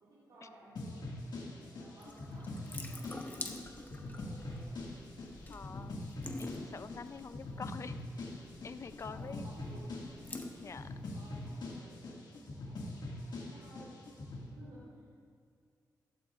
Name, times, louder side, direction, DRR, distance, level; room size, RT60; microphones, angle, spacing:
voice 1, 0.0-4.8 9.0-10.5 11.1-14.0 14.4-15.1, right 1 dB, 85° right, -8 dB, 3.2 m, -57 dB
sound 1, 0.8-14.5, left 2 dB, 75° left, 2.0 m, -43 dB
Water tap faucet / Sink (filling or washing) / Drip, 2.0-11.8, left 2 dB, 25° left, 0.9 m, -48 dB
voice 2, 5.5-6.0 6.4-8.3 8.6-9.7 10.6-10.9, left 5 dB, 40° left, 12 dB, 0.4 m, -47 dB
15.0 x 12.5 x 2.5 m, 2.3 s
cardioid pair, 95°, 7 cm